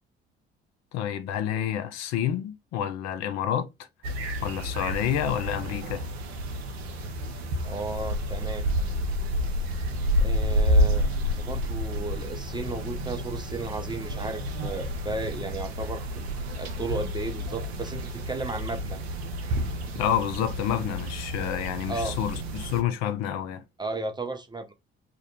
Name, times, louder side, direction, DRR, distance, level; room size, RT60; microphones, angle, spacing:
voice 1, 0.9-3.7 4.4-6.1 19.9-23.6, left 10 dB, 60° left, 0.5 m, -29 dB
sound 1, 4.0-22.8, equal, 85° right, 0.5 m, -29 dB
voice 2, 7.6-8.6 10.2-16.2 16.6-19.0 21.9-22.2 23.8-24.7, right 2 dB, 15° right, 0.4 m, -34 dB
2.4 x 2.1 x 2.9 m
figure-of-eight pair, 50°, 31 cm